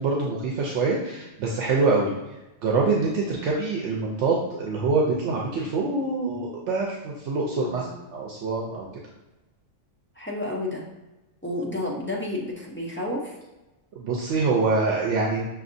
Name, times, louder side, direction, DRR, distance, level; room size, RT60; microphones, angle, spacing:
voice 1, 0.0-2.1 2.6-7.9 8.1-8.9 13.9-15.5, right 3 dB, 75° right, -2 dB, 0.9 m, -25 dB
voice 2, 7.5-7.9 10.2-10.9 11.4-13.4, left 1 dB, 15° left, -3 dB, 0.4 m, -31 dB
6.1 x 2.7 x 2.6 m, 1.0 s
omnidirectional pair, 1.2 m